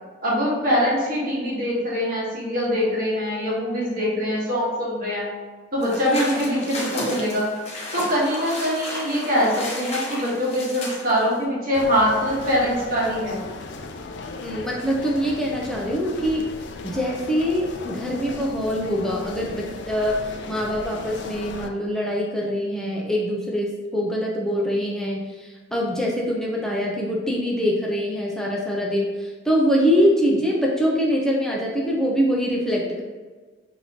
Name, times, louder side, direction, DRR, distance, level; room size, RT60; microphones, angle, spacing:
voice 1, 0.2-5.3 5.7-7.5 7.9-13.4, equal, 50° right, -5 dB, 1.3 m, -23 dB
sound 1, 5.8-11.4, left 1 dB, 35° left, 0.8 m, -33 dB
sound 2, 11.7-21.7, left 3 dB, 65° left, 0.4 m, -37 dB
voice 2, 14.4-16.5 16.8-33.0, equal, 5° left, -3 dB, 0.5 m, -24 dB
5.8 x 2.8 x 2.8 m, 1.4 s
head